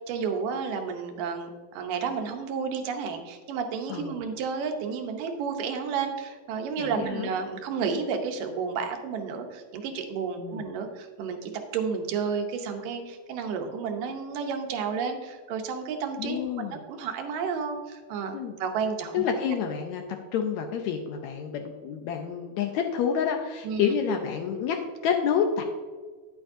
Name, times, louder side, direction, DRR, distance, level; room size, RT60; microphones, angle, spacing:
voice 1, 0.1-16.4 16.7-19.2 23.6-24.0, right 5 dB, 90° right, 4 dB, 2.5 m, -31 dB
voice 2, 6.8-7.3 10.4-10.6 16.2-16.8 18.3-18.5 19.1-25.6, left 7 dB, 80° left, 4 dB, 1.7 m, -28 dB
9.8 x 8.5 x 2.6 m, 1.5 s
omnidirectional pair, 3.7 m